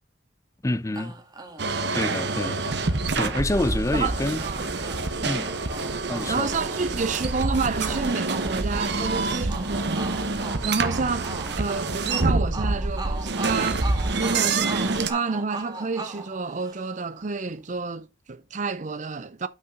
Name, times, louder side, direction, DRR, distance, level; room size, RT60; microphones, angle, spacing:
voice 1, 0.6-1.2 1.9-2.6 3.1-4.4 5.2-5.5 6.1-6.5, left 1 dB, 15° left, 0.5 m, -27 dB
sound 1, 0.9-17.1, right 3 dB, 20° right, 1.5 m, -40 dB
sound 2, 1.6-15.1, right 3 dB, 60° right, 1.0 m, -27 dB
voice 2, 3.9-4.6 6.3-10.2 10.6-19.5, right 4 dB, 40° right, 0.5 m, -29 dB
6.0 x 5.7 x 5.2 m
head